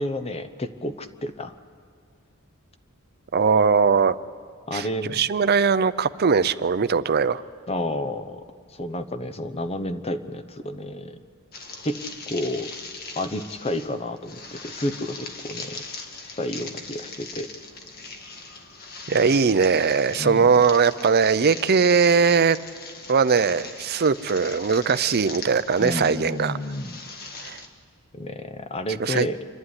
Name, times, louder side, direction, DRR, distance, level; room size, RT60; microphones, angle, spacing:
voice 1, 0.0-1.6 4.7-5.2 7.7-8.4 8.8-11.2 11.8-12.7 13.2-15.8 16.4-17.5 20.2-20.5 25.8-27.0 28.1-29.4, left 1 dB, 30° left, 10 dB, 0.9 m, -30 dB
voice 2, 3.3-4.2 4.7-7.4 19.1-22.6 23.1-26.5 27.4-27.6 29.0-29.3, right 5 dB, 45° right, 14 dB, 0.6 m, -20 dB
sound 1, 11.5-27.7, left 3 dB, 45° left, 1.7 m, -40 dB
27.0 x 11.5 x 9.7 m, 2.1 s
head